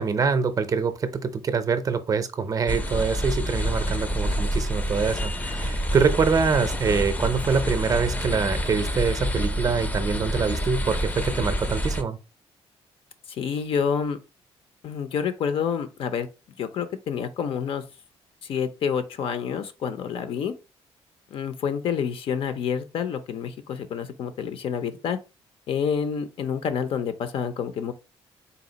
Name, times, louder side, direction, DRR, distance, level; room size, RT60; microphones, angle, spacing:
voice 1, 0.0-12.2, right 5 dB, 35° right, 0.5 m, -25 dB
sound 1, 2.7-12.0, equal, 15° left, 0.4 m, -27 dB
voice 2, 13.3-14.2 14.8-16.3 16.6-17.8 18.4-20.5 21.3-25.2 25.7-27.9, left 7 dB, 55° left, 0.6 m, -28 dB
4.0 x 2.4 x 3.9 m
cardioid pair, 135°, 11 cm